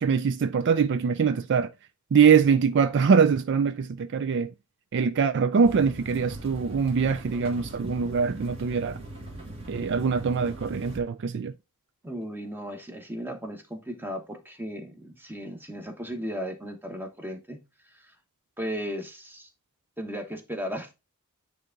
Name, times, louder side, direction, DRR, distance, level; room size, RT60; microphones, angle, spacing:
voice 1, 0.0-1.7 2.1-4.5 4.9-9.0 9.7-11.5, right 6 dB, 55° right, 0.4 m, -23 dB
sound 1, 5.6-11.0, right 1 dB, 30° right, 1.7 m, -41 dB
voice 2, 12.0-17.6 17.8-18.1 18.6-19.5 20.0-20.9, equal, 10° right, 1.1 m, -36 dB
9.5 x 3.5 x 3.8 m
head